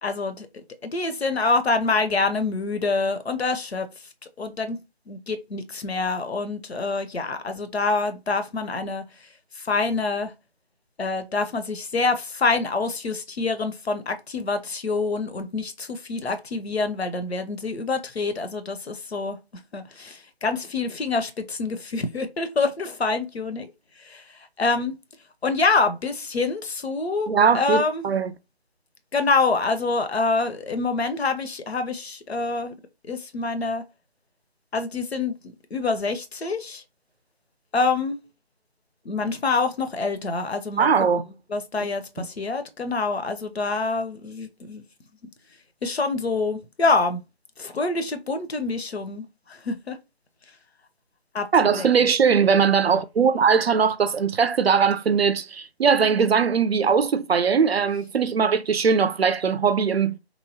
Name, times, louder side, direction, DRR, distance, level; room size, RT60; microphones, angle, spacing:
voice 1, 0.0-0.5 0.8-3.9 4.4-4.8 5.1-9.3 9.5-10.3 11.0-19.4 19.7-23.7 24.0-24.9 25.4-28.1 29.1-32.8 33.0-33.8 34.7-35.4 35.7-36.8 37.7-38.2 39.0-40.9 41.5-44.8 45.8-47.2 47.6-50.0 51.3-51.9, left 3 dB, 70° left, 0.7 m, -26 dB
voice 2, 27.3-28.3 40.8-41.2 42.2-42.3 51.5-60.2, right 6 dB, 65° right, 0.5 m, -20 dB
3.1 x 2.0 x 2.6 m
figure-of-eight pair, 160°, 33 cm